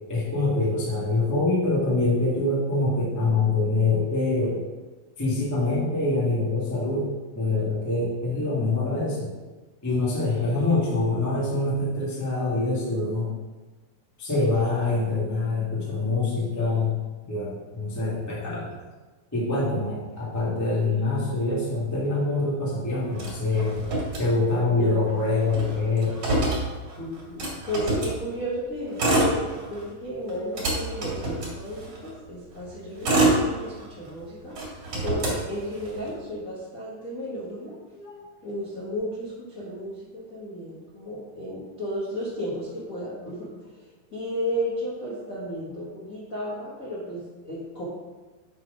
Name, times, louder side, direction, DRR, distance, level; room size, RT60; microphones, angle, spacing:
voice 1, 0.1-4.6 5.2-7.1 7.3-9.3 9.8-13.3 14.2-17.0 17.3-18.8 19.3-23.8 24.2-26.2 37.9-38.1, left 3 dB, 20° left, -7 dB, 0.4 m, -25 dB
Motor vehicle (road), 23.1-24.8 25.1-25.2 25.4-28.2 28.8-29.9 30.3-32.1 32.7-34.1 34.5-36.1, right 2 dB, 45° right, 2.6 m, -26 dB
voice 2, 27.0-37.7 38.4-43.5 44.1-47.8, equal, 70° left, -8 dB, 0.7 m, -33 dB
7.4 x 4.0 x 5.0 m, 1.2 s
omnidirectional pair, 4.1 m